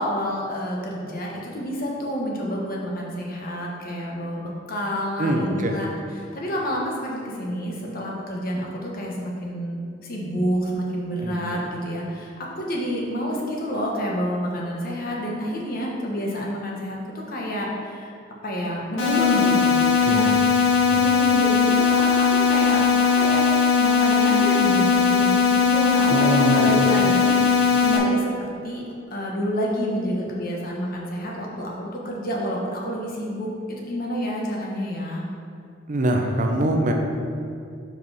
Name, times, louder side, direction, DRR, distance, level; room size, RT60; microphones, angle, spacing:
voice 1, 0.0-5.9 6.2-17.0 17.3-18.1 18.4-19.8 20.1-20.3 20.9-22.8 23.1-23.4 23.8-28.8 29.1-35.2, equal, 45° left, -2 dB, 1.1 m, -28 dB
voice 2, 5.2-5.8 11.2-11.6 20.0-20.4 20.9-21.1 26.0-27.1 35.9-36.9, right 1 dB, 40° right, 3 dB, 0.5 m, -24 dB
sound 1, 19.0-28.0, left 5 dB, 70° left, 1.1 m, -19 dB
4.7 x 4.7 x 5.4 m, 2.4 s
head